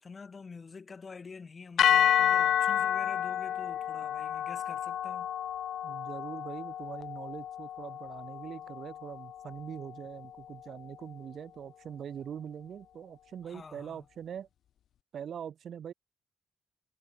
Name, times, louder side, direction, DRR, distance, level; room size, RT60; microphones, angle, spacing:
voice 1, 0.0-5.3 13.4-14.0, left 4 dB, 35° left, 5.4 m, -47 dB
sound 1, 1.8-10.0, left 10 dB, 80° left, 0.4 m, -30 dB
voice 2, 5.8-14.5 15.1-15.9, right 8 dB, 60° right, 2.0 m, -42 dB
cardioid pair, 135°, 0 cm